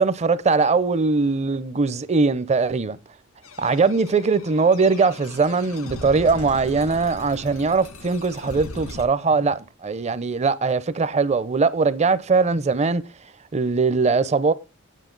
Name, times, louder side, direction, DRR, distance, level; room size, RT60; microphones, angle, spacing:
voice 1, 0.0-3.0 3.6-13.0 13.5-14.5, right 4 dB, 30° right, 0.5 m, -21 dB
sound 1, 3.4-9.0, left 2 dB, 85° left, 1.8 m, -39 dB
9.2 x 8.0 x 3.8 m
head